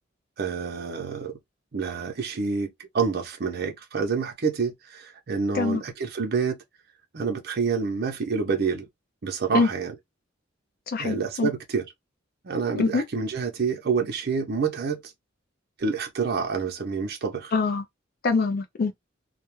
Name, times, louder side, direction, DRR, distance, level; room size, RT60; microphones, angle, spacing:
voice 1, 0.4-1.4 1.7-6.6 7.1-8.9 9.2-9.9 11.0-11.9 12.4-15.1 15.8-17.5, right 5 dB, 55° right, 0.6 m, -28 dB
voice 2, 10.9-11.5 12.8-13.0 17.5-17.8 18.2-18.9, left 4 dB, 50° left, 0.4 m, -24 dB
2.2 x 2.1 x 3.0 m
head